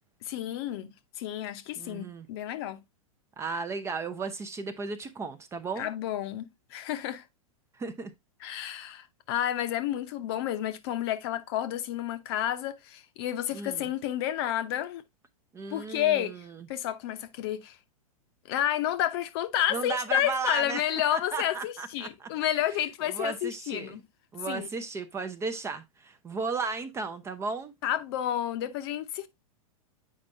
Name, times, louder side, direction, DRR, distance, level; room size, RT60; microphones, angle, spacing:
voice 1, 0.2-2.8 5.8-7.2 8.4-15.0 15.7-16.4 16.7-17.8 18.5-24.0 24.5-24.7 27.8-29.3, left 12 dB, 45° left, 0.8 m, -30 dB
voice 2, 1.8-2.3 3.4-5.9 7.8-8.1 13.5-13.9 15.5-16.7 19.7-20.8 21.1-22.3 22.7-24.0 24.3-27.7, right 4 dB, 15° right, 0.6 m, -35 dB
8.3 x 5.1 x 2.5 m
figure-of-eight pair, 100°, 18 cm